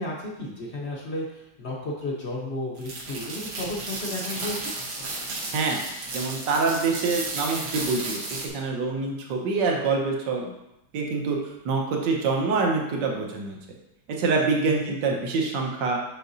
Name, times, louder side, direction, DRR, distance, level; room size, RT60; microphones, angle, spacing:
voice 1, 0.0-4.7 14.6-14.9, left 1 dB, 50° left, -2 dB, 0.8 m, -33 dB
sound 1, 2.8-8.5, right 2 dB, 90° right, 2.0 m, -33 dB
voice 2, 5.5-5.9 6.1-10.5 10.9-11.4 11.6-13.6 14.2-16.0, right 4 dB, 75° right, 0 dB, 1.6 m, -25 dB
6.8 x 5.6 x 2.6 m, 0.87 s
omnidirectional pair, 2.0 m